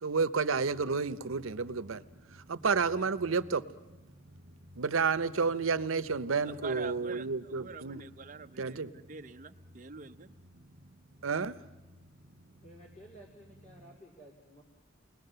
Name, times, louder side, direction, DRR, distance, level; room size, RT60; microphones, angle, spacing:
voice 1, 0.0-2.0 2.5-3.6 4.8-8.0 8.6-8.9 11.2-11.6, right 5 dB, 85° right, 15 dB, 0.7 m, -30 dB
Drum, 0.5-14.0, equal, 65° right, 1.3 m, -56 dB
voice 2, 6.4-10.3, right 4 dB, 40° right, 7 dB, 0.7 m, -45 dB
voice 3, 12.6-14.6, right 1 dB, 35° left, -1 dB, 2.3 m, -54 dB
29.5 x 21.0 x 6.8 m, 1.2 s
head